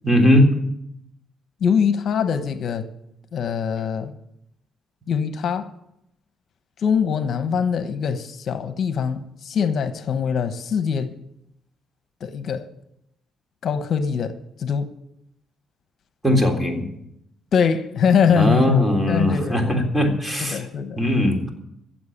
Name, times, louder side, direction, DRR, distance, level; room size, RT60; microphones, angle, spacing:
voice 1, 0.0-0.5 16.2-16.9 18.3-20.7 21.0-21.5, left 1 dB, 10° right, 3.6 m, -19 dB
voice 2, 1.6-2.9 3.3-4.1 5.1-5.7 6.8-11.1 12.2-12.7 13.6-14.3 14.6-14.9 17.5-18.7 19.1-19.8 20.4-21.0, left 6 dB, 60° left, 1.1 m, -23 dB
15.5 x 7.5 x 9.9 m
cardioid pair, 90°, 0 cm